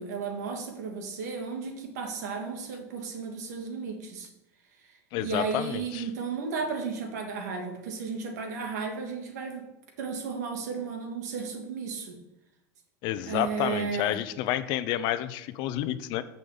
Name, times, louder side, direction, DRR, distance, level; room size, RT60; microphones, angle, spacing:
voice 1, 0.0-4.3 5.2-9.6 10.0-12.2 13.3-14.2, right 5 dB, 85° right, 3 dB, 2.0 m, -34 dB
voice 2, 5.1-6.1 13.0-16.2, left 13 dB, 55° left, 13 dB, 0.6 m, -30 dB
6.2 x 5.7 x 7.0 m, 0.90 s
supercardioid pair, 125°, 9 cm